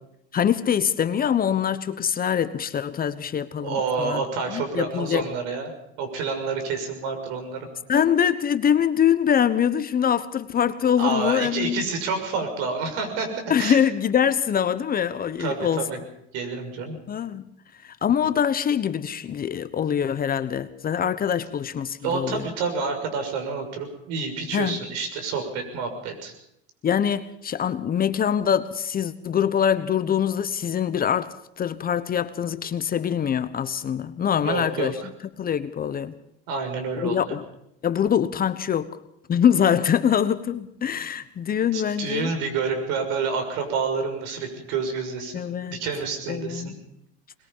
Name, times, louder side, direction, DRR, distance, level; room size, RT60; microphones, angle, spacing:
voice 1, 0.3-4.2 4.5-5.3 7.9-11.9 13.5-15.9 17.1-17.5 17.8-22.5 24.5-24.8 26.8-35.0 35.4-36.1 37.0-37.4 37.8-39.0 39.3-42.3 45.3-45.8 46.3-46.8, left 8 dB, 30° left, 1.1 m, -24 dB
voice 2, 3.6-5.7 6.0-7.7 11.0-13.3 13.6-13.8 15.4-16.0 16.3-16.9 22.0-26.3 34.4-35.1 36.5-37.4 41.7-46.7, right 5 dB, 70° right, 6.4 m, -28 dB
21.5 x 21.5 x 5.6 m
supercardioid pair, 105°, 30 cm